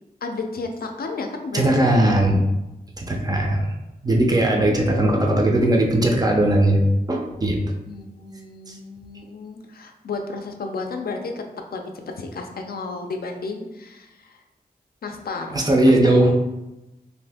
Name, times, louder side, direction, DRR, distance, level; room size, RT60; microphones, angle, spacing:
voice 1, 0.2-1.8 7.8-11.4 11.7-14.4 15.0-16.1, left 3 dB, 70° left, 4 dB, 0.4 m, -33 dB
voice 2, 1.5-2.4 3.0-3.7 4.0-6.8 7.1-7.6 8.7-8.8 15.5-16.3, right 1 dB, 25° right, 1 dB, 0.4 m, -18 dB
2.6 x 2.5 x 3.4 m, 1.0 s
wide cardioid pair, 115°, 16 cm